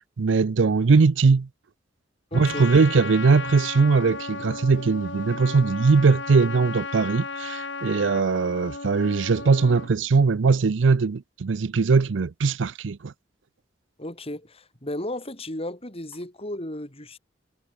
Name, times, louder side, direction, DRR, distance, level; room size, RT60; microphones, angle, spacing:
voice 1, 0.0-1.5 2.3-13.1, right 4 dB, 80° right, 0.5 m, -20 dB
Trumpet, 2.3-9.9, left 4 dB, 75° left, 2.8 m, -35 dB
voice 2, 2.3-2.7 14.0-17.2, left 1 dB, 30° left, 6.0 m, -34 dB
head